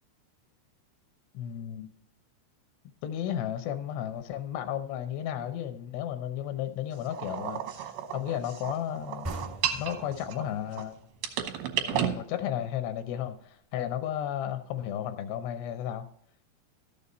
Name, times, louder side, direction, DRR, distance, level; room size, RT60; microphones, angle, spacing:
voice 1, 1.3-1.9 3.0-9.3 9.7-11.0 11.8-16.0, left 10 dB, 80° left, 2.8 m, -34 dB
sound 1, 7.1-10.8 11.2-12.2, right 10 dB, 75° right, 2.6 m, -33 dB
sound 2, 9.2-12.6, equal, 50° right, 0.5 m, -43 dB
13.0 x 6.9 x 4.1 m
omnidirectional pair, 4.8 m